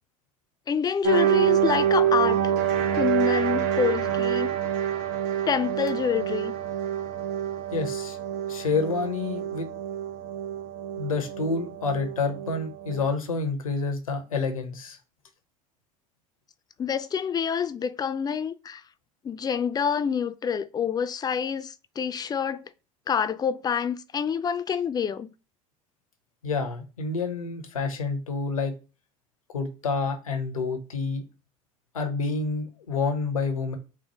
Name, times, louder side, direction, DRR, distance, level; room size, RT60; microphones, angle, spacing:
voice 1, 0.7-2.5 2.9-4.5 5.5-6.5 16.8-18.8 19.2-22.6 23.1-25.3, left 7 dB, 25° left, 0.4 m, -27 dB
sound 1, 1.0-13.1, right 10 dB, 60° right, 0.9 m, -27 dB
voice 2, 7.7-8.2 8.5-9.7 11.0-15.0 26.4-28.7 29.5-31.2 31.9-33.8, left 4 dB, 90° left, 0.7 m, -28 dB
4.3 x 2.0 x 3.0 m
hypercardioid pair, 70°, 17 cm